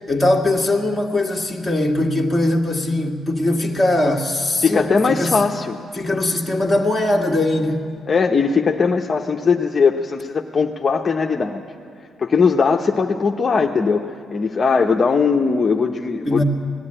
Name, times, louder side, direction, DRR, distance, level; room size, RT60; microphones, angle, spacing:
voice 1, 0.1-5.4 5.9-7.9 16.3-16.4, left 1 dB, ahead, -2 dB, 1.7 m, -20 dB
voice 2, 4.6-5.8 8.1-11.6 12.2-14.0 14.3-16.4, left 5 dB, 30° left, 1 dB, 0.7 m, -19 dB
19.5 x 13.5 x 9.9 m, 2.2 s
cardioid pair, 145°, 0 cm